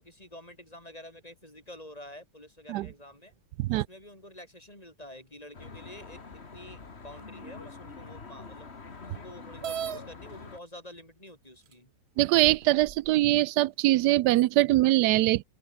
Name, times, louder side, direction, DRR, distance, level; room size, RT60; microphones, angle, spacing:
voice 1, 0.0-3.3 3.7-8.7 9.1-11.9, left 1 dB, 20° left, 6.2 m, -48 dB
Traffic noise roadway noise, 5.5-10.6, left 4 dB, 40° left, 2.3 m, -45 dB
sound 1, 9.6-10.0 11.0-11.1 11.7-11.8 12.4-13.1, right 9 dB, 50° right, 0.8 m, -36 dB
voice 2, 12.2-15.4, right 17 dB, 80° right, 1.1 m, -22 dB
open air
omnidirectional pair, 1.8 m